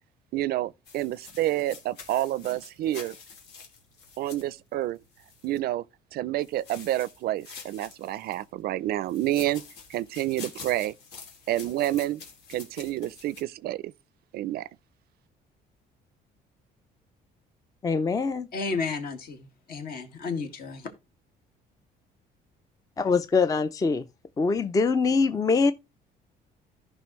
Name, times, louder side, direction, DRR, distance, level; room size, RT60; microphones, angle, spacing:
voice 1, 0.3-3.1 4.2-5.0 5.4-5.8 6.1-9.6 9.9-10.9 11.5-12.2 12.5-13.9 14.3-14.7, right 14 dB, 65° right, 0.4 m, -29 dB
sound 1, 0.8-5.6 6.4-8.4 9.0-13.4, left 5 dB, 80° left, 2.6 m, -47 dB
voice 2, 17.8-18.5 23.0-24.1 24.4-25.7, left 4 dB, 20° left, 0.4 m, -23 dB
voice 3, 18.5-20.9, left 4 dB, 65° left, 2.0 m, -32 dB
14.0 x 5.4 x 3.1 m
cardioid pair, 110°, 17 cm